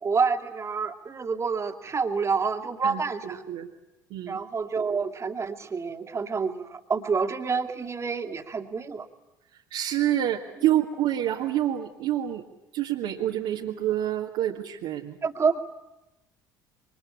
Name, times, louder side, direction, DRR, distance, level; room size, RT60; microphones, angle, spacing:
voice 1, 0.0-3.4 4.3-9.1 15.2-15.6, right 5 dB, 25° right, 5 dB, 2.4 m, -28 dB
voice 2, 2.8-3.7 4.1-4.4 9.7-12.4 12.7-15.2, right 12 dB, 55° right, -2 dB, 1.9 m, -27 dB
27.5 x 25.0 x 8.6 m, 0.93 s
figure-of-eight pair, 60°, 11 cm